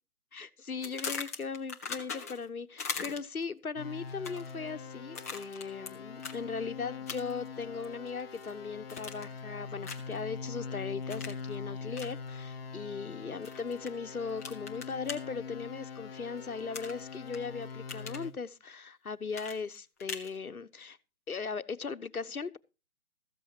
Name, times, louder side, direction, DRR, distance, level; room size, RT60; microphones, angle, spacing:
voice 1, 0.3-21.0 21.3-22.6, left 5 dB, 75° left, 1.2 m, -38 dB
sound 1, 0.8-2.5 2.8-3.4 4.1-4.5 5.1-5.9 6.2-6.4 7.1-7.5 7.8-8.5 8.9-9.4 9.8-10.2 11.1-11.4 11.9-12.1 13.4-13.9 14.4-15.2 16.7-17.4 17.7-18.3 19.3-20.3, left 5 dB, 10° left, 0.7 m, -40 dB
sound 2, 3.8-18.3, left 5 dB, 40° left, 1.3 m, -43 dB
14.5 x 14.0 x 2.9 m
figure-of-eight pair, 145°, 44 cm